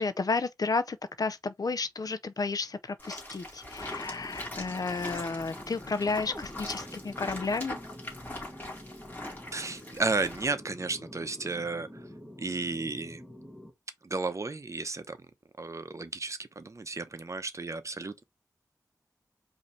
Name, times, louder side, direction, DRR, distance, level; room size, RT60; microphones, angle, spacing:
voice 1, 0.0-7.8, left 4 dB, 60° left, 0.5 m, -32 dB
sound 1, 3.0-10.5, left 1 dB, 25° left, 2.5 m, -42 dB
sound 2, 3.8-13.7, equal, ahead, 1.3 m, -48 dB
voice 2, 9.5-11.9 12.4-13.2 14.0-15.2 15.6-18.2, right 3 dB, 45° right, 0.7 m, -33 dB
5.1 x 2.8 x 3.2 m
wide cardioid pair, 75°, 7 cm